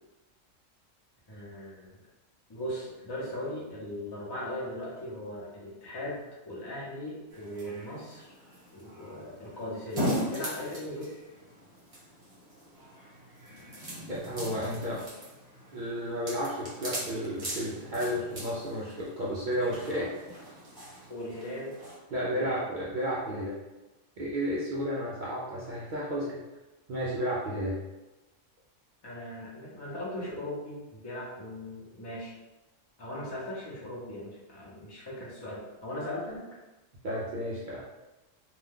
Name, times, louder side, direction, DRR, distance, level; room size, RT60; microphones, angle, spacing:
voice 1, 1.3-2.0 2.5-8.3 8.7-11.1 21.1-21.8 22.3-22.6 29.0-32.3 33.0-36.4, left 1 dB, 25° left, -6 dB, 0.7 m, -38 dB
sound 1, 7.3-22.0, equal, 30° right, 1.1 m, -40 dB
voice 2, 14.1-15.0 15.7-20.1 22.1-23.6 24.2-26.4 26.9-27.8 37.0-37.8, equal, 60° right, -6 dB, 0.5 m, -32 dB
2.5 x 2.2 x 3.5 m, 1.1 s
omnidirectional pair, 1.3 m